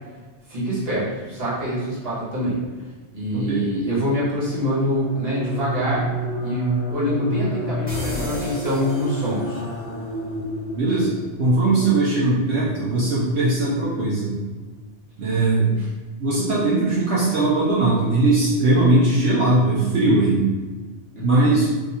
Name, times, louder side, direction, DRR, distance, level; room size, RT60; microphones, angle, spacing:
voice 1, 0.5-2.6 3.1-6.0 6.4-9.6 15.8-15.9 21.1-21.5, equal, 30° right, -9 dB, 1.3 m, -25 dB
voice 2, 3.3-3.7 10.7-14.4 15.2-15.7 16.2-20.4 21.2-21.7, right 2 dB, 70° right, -7 dB, 1.0 m, -19 dB
sound 1, 4.8-11.8, equal, 40° left, 0.4 m, -30 dB
sound 2, 7.9-9.7, left 1 dB, 10° right, 0.9 m, -33 dB
2.7 x 2.4 x 4.1 m, 1.3 s
omnidirectional pair, 1.2 m